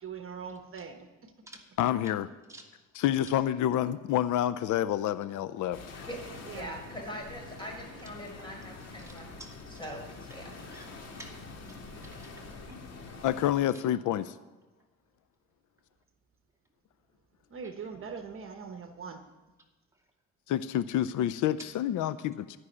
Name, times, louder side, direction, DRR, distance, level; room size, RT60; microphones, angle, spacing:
voice 1, 0.0-1.3 6.4-6.9 17.5-19.2, right 6 dB, 45° right, 6 dB, 1.2 m, -42 dB
voice 2, 1.8-2.3 3.0-5.8 13.2-14.3 20.5-22.6, left 11 dB, 80° left, 15 dB, 0.6 m, -28 dB
voice 3, 2.5-2.8 9.0-9.6 10.3-13.0 13.7-13.8 17.6-17.7 19.9-20.0 21.6-21.7, right 1 dB, 10° right, 0 dB, 2.4 m, -52 dB
sound 1, 5.7-13.5, left 3 dB, 55° left, 2.5 m, -46 dB
voice 4, 6.5-9.3 9.8-10.5, equal, 15° left, 0 dB, 5.1 m, -42 dB
13.0 x 6.4 x 9.7 m, 1.1 s
cardioid pair, 90°, 30 cm